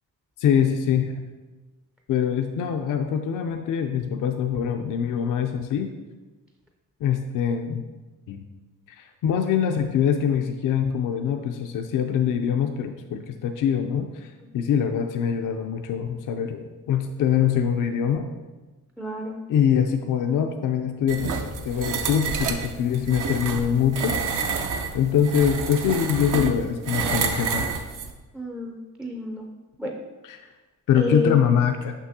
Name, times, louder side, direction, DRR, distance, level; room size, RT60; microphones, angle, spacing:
voice 1, 0.4-1.1 2.1-5.9 7.0-7.8 8.3-8.4 8.9-16.6 16.9-18.3 19.5-21.3 21.7-24.2 24.9-27.7 30.2-30.5 30.9-31.9, left 8 dB, 65° left, 5 dB, 0.5 m, -24 dB
voice 2, 19.0-19.4 28.3-29.5 29.8-29.9 31.0-31.5, left 1 dB, 5° right, 1 dB, 0.4 m, -29 dB
sound 1, 21.1-28.1, right 5 dB, 65° right, 0.7 m, -28 dB
6.1 x 5.8 x 2.7 m, 1.2 s
cardioid pair, 110°, 34 cm